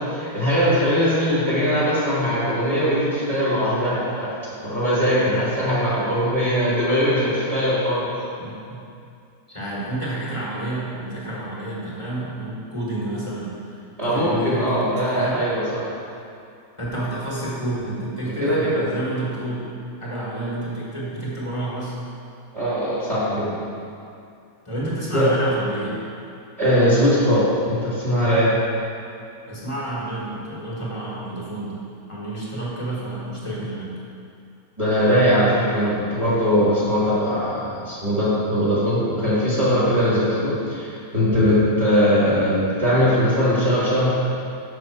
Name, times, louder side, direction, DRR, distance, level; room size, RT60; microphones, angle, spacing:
voice 1, 0.0-4.3 4.6-8.0 14.0-15.8 18.4-18.9 22.5-23.6 25.1-25.3 26.6-28.5 34.8-44.1, equal, 20° right, -10 dB, 1.8 m, -20 dB
voice 2, 8.4-8.8 9.5-14.8 15.1-15.4 16.8-21.9 24.6-26.0 29.4-31.8 32.1-33.9, right 1 dB, 20° left, -7 dB, 1.2 m, -30 dB
6.2 x 5.6 x 4.6 m, 2.5 s
omnidirectional pair, 1.8 m